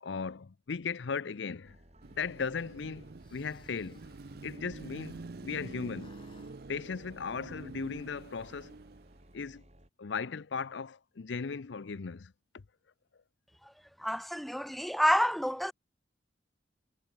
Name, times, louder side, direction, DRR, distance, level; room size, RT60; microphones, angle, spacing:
voice 1, 0.0-1.8 2.1-4.1 4.4-6.1 6.7-8.8 9.3-9.6 10.0-12.6, left 5 dB, 70° left, 0.6 m, -37 dB
sound 1, 1.6-9.9, right 1 dB, 35° right, 5.5 m, -59 dB
Car passing by / Traffic noise roadway noise / Engine, 2.0-9.4, right 3 dB, 55° right, 0.6 m, -47 dB
sound 2, 3.2-5.7 5.9-6.6, left 2 dB, 25° left, 3.8 m, -61 dB
voice 2, 14.0-15.7, equal, ahead, 0.4 m, -28 dB
head